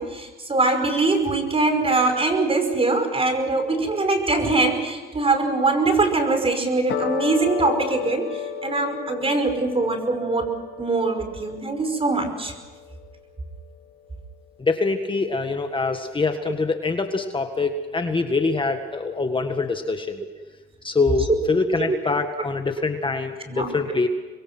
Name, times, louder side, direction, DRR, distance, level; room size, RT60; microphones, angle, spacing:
voice 1, 0.0-10.5 10.8-12.5 21.3-21.4 21.8-22.0 23.5-23.7, right 3 dB, 30° right, 7 dB, 5.4 m, -22 dB
sound 1, 6.9-13.4, left 8 dB, 70° left, 4.5 m, -33 dB
voice 2, 14.6-20.2 20.8-24.1, left 3 dB, 25° left, 6 dB, 1.8 m, -24 dB
26.5 x 22.5 x 6.2 m, 1.3 s
cardioid pair, 90°, 20 cm